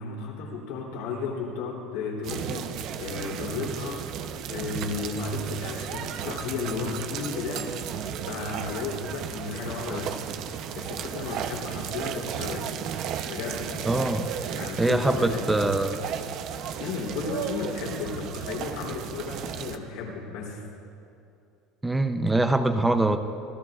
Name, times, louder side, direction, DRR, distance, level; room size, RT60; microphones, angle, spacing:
voice 1, 0.0-4.0 4.5-7.7 8.3-10.2 10.7-12.7 13.2-13.7 14.5-15.5 16.8-20.6, left 4 dB, 80° left, -1 dB, 3.2 m, -34 dB
sound 1, 2.2-19.8, right 8 dB, 55° right, 0.7 m, -34 dB
voice 2, 13.9-14.3 14.8-16.0 21.8-23.2, right 2 dB, 10° right, 8 dB, 0.6 m, -23 dB
26.0 x 14.5 x 2.5 m, 2.6 s
supercardioid pair, 125°, 0 cm